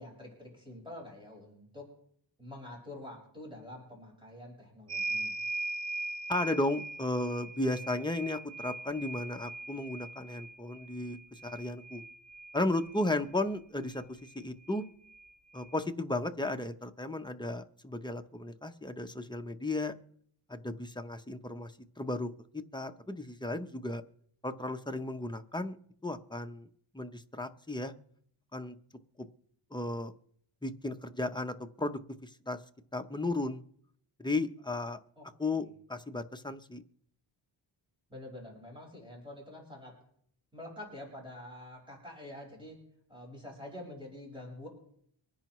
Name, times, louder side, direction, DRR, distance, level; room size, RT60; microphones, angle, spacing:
voice 1, 0.0-1.9 2.4-5.4 35.2-35.7 38.1-39.9 40.5-42.8 43.1-44.7, left 1 dB, 10° right, -2 dB, 5.2 m, -47 dB
sound 1, 4.9-13.0 14.3-14.4 14.7-15.7, right 2 dB, 50° right, 1.5 m, -40 dB
voice 2, 6.3-12.0 12.5-14.8 15.5-19.9 20.5-21.7 22.0-24.0 24.4-25.8 26.0-26.7 26.9-27.9 28.5-28.8 29.7-30.1 30.6-32.6 32.9-33.6 34.2-35.0 35.4-36.8, left 2 dB, 10° left, 6 dB, 0.6 m, -34 dB
24.5 x 10.5 x 3.1 m, 0.66 s
wide cardioid pair, 125°, 50 cm